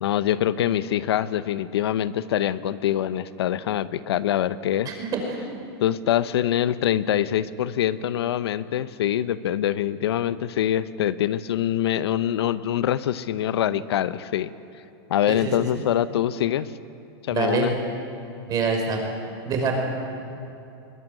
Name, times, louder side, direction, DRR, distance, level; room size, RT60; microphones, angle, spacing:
voice 1, 0.0-5.0 5.8-14.5 15.1-16.7 17.3-17.7, left 11 dB, 80° left, 14 dB, 0.9 m, -24 dB
voice 2, 4.9-5.4 15.3-15.5 17.3-17.7 18.5-19.0 19.5-19.7, right 5 dB, 30° right, 2 dB, 5.6 m, -25 dB
22.0 x 18.5 x 10.0 m, 2.7 s
supercardioid pair, 140°, 13 cm